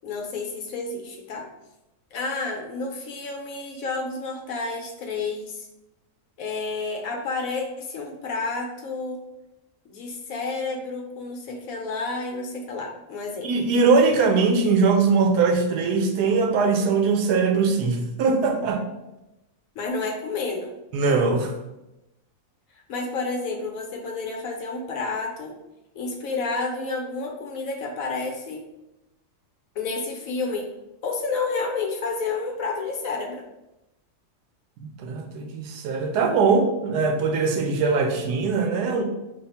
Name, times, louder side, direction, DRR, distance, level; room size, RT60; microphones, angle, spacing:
voice 1, 0.0-1.4 2.1-5.7 6.4-9.2 9.9-13.5 19.8-20.7 22.7-25.6 25.9-28.7 29.7-30.7 31.0-33.4, left 3 dB, 70° left, 1 dB, 1.0 m, -30 dB
voice 2, 13.4-18.8 20.9-21.5 34.8-39.0, right 4 dB, 85° right, 4 dB, 1.2 m, -21 dB
3.4 x 2.3 x 4.2 m, 0.95 s
omnidirectional pair, 1.7 m